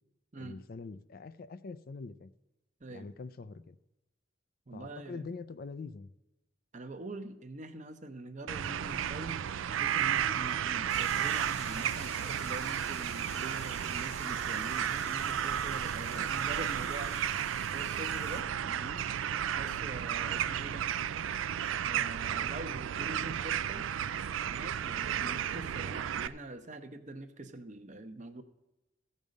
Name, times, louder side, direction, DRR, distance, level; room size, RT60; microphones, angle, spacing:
voice 1, 0.4-2.3 2.9-3.8 4.7-6.1 19.6-19.8, left 4 dB, 50° left, 14 dB, 0.4 m, -44 dB
voice 2, 2.8-3.1 4.7-5.3 6.7-9.4 9.7-17.4 17.7-19.0 19.6-20.9 21.9-23.9 24.4-28.4, right 2 dB, 40° right, 9 dB, 0.8 m, -44 dB
sound 1, 8.5-26.3, right 9 dB, 85° right, 0.4 m, -33 dB
sound 2, 10.9-18.4, left 6 dB, 35° left, 0.9 m, -50 dB
15.0 x 5.4 x 6.4 m, 1.0 s
head